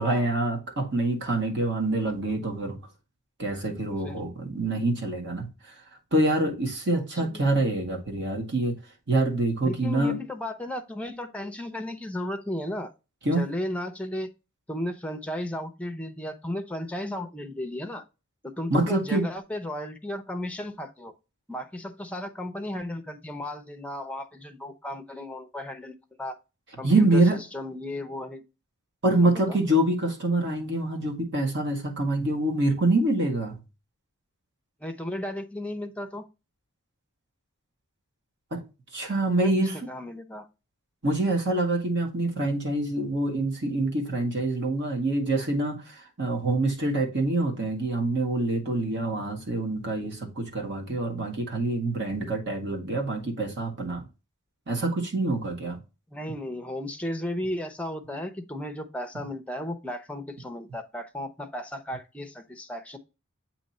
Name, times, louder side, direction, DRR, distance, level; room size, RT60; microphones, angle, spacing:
voice 1, 0.0-2.8 3.4-5.5 6.1-8.8 9.1-10.2 13.3-13.4 18.7-19.3 26.8-27.4 29.0-33.6 38.5-38.6 38.9-39.8 41.0-54.1 54.7-55.8, right 2 dB, 55° right, 1.9 m, -26 dB
voice 2, 6.9-7.6 9.6-12.9 13.3-14.3 14.7-18.0 18.4-21.1 21.5-26.4 26.8-27.2 27.5-28.4 29.2-29.6 34.8-36.3 39.4-40.5 56.1-63.0, left 1 dB, 5° left, 0.7 m, -35 dB
7.8 x 3.1 x 4.2 m
head